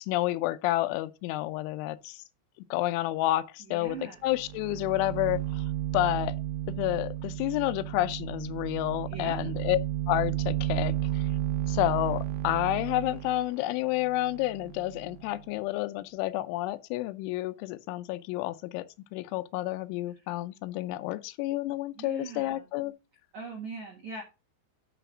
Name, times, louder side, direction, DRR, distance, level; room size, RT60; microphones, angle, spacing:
voice 1, 0.0-2.2 2.7-5.6 5.9-6.4 6.7-9.8 10.1-11.3 11.7-18.8 19.1-22.9, left 16 dB, 85° left, 2.9 m, -30 dB
voice 2, 3.7-4.2 9.1-9.5 20.1-20.3 22.0-22.7 23.3-24.2, right 5 dB, 75° right, 1.7 m, -41 dB
sound 1, 3.9-4.0 4.3-15.4, right 13 dB, 90° right, 3.5 m, -33 dB
9.0 x 3.4 x 6.0 m
omnidirectional pair, 5.6 m